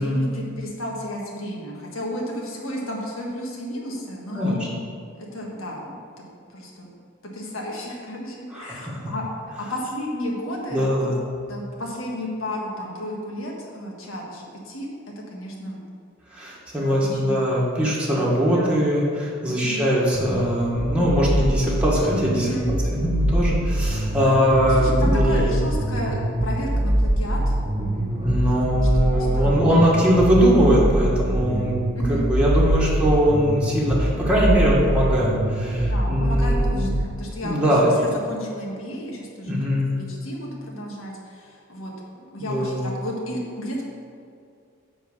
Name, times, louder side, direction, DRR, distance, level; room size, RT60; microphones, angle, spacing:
voice 1, 0.0-4.5 5.1-6.9 7.2-9.3 9.6-11.1 11.5-15.8 16.8-17.4 18.5-18.8 19.5-19.9 22.3-22.7 23.4-28.2 28.5-29.9 31.4-32.3 35.6-43.8, equal, 75° left, -2 dB, 1.6 m, -33 dB
voice 2, 8.5-8.9 10.7-11.2 16.3-22.5 22.9-25.5 28.2-31.8 32.1-36.8 37.4-37.9 39.4-39.9 42.4-42.8, equal, 5° right, -6 dB, 1.6 m, -21 dB
sound 1, 20.1-37.0, right 1 dB, 35° right, 0.9 m, -23 dB
9.3 x 4.0 x 6.6 m, 2.3 s
head